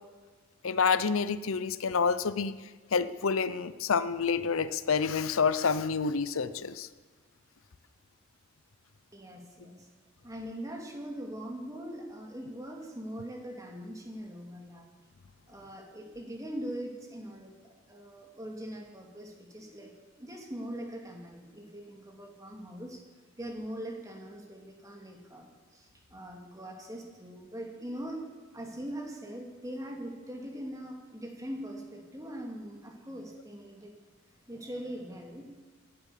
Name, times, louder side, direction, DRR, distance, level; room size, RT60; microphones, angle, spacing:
voice 1, 0.6-2.6 2.9-6.9, left 5 dB, 85° left, 14 dB, 0.7 m, -28 dB
voice 2, 9.1-9.9 10.2-14.9 15.5-23.0 23.4-28.2 28.5-33.9 34.5-35.5, equal, 15° right, 1 dB, 2.5 m, -42 dB
17.0 x 11.0 x 7.3 m, 1.4 s
head